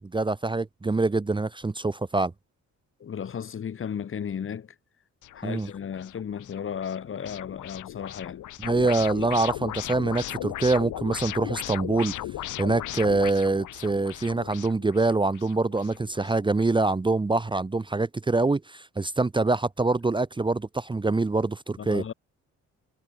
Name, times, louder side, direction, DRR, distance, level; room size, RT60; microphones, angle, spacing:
voice 1, 0.1-2.3 5.4-5.7 8.6-12.1 12.6-22.0, right 3 dB, 15° right, 0.8 m, -25 dB
voice 2, 3.0-4.7 5.3-8.4 9.1-9.3 21.8-22.1, left 8 dB, 45° left, 1.3 m, -34 dB
sound 1, 5.2-16.7, left 13 dB, 80° left, 4.9 m, -37 dB
cardioid pair, 90°, 30 cm